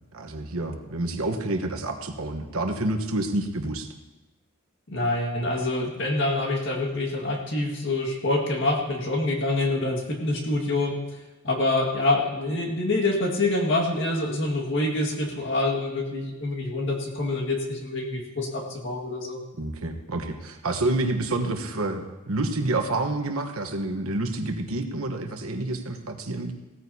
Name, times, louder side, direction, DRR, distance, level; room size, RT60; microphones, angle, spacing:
voice 1, 0.1-3.9 19.6-26.5, right 2 dB, 75° right, 5 dB, 1.2 m, -28 dB
voice 2, 4.9-11.0 11.4-19.4, left 2 dB, 55° left, 1 dB, 1.9 m, -26 dB
17.0 x 14.0 x 2.8 m, 1.1 s
head